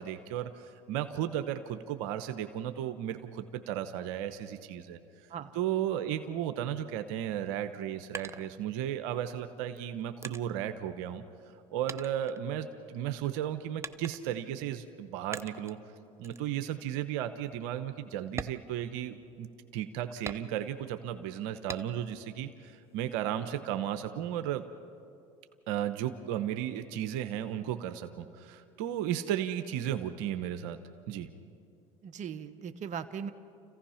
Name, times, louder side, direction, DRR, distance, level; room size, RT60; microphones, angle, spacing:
voice 1, 0.0-5.0 5.5-11.2 11.7-15.8 16.2-19.5 19.7-24.7 25.7-30.8 31.1-31.3, right 10 dB, 75° right, 9 dB, 1.0 m, -34 dB
sound 1, 7.6-9.1 9.7-11.6 11.9-13.0 13.8-14.5 15.3-15.8 16.2-16.5 16.9-17.0 17.5-17.6 18.3-19.5 20.3-20.9 21.7-22.2 22.6-23.5, right 4 dB, 15° right, 0.7 m, -44 dB
voice 2, 32.0-33.3, right 7 dB, 50° right, 10 dB, 1.1 m, -39 dB
29.0 x 15.5 x 5.8 m, 2.5 s
supercardioid pair, 85°, 16 cm